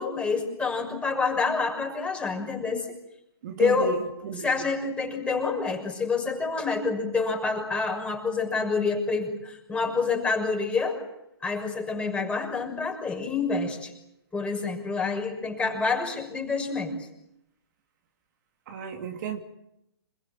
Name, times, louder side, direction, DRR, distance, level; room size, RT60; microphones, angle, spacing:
voice 1, 0.0-2.9 3.6-3.9 4.3-11.0 11.4-13.9 14.3-17.0, left 4 dB, 10° left, 3 dB, 6.3 m, -27 dB
voice 2, 3.4-4.5 18.7-19.4, right 7 dB, 45° right, 3 dB, 2.9 m, -33 dB
28.0 x 22.0 x 7.7 m, 0.81 s
figure-of-eight pair, 130°, 13 cm